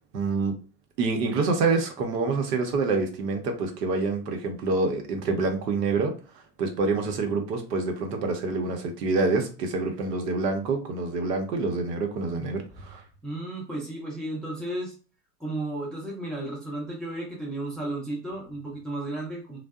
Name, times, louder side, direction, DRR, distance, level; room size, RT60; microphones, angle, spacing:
voice 1, 0.1-0.5 1.0-6.1 6.6-13.0, right 3 dB, 75° right, 0.9 m, -26 dB
voice 2, 13.2-14.9 15.4-19.6, right 1 dB, ahead, 0.4 m, -33 dB
2.6 x 2.2 x 2.3 m
hypercardioid pair, 110°, 49 cm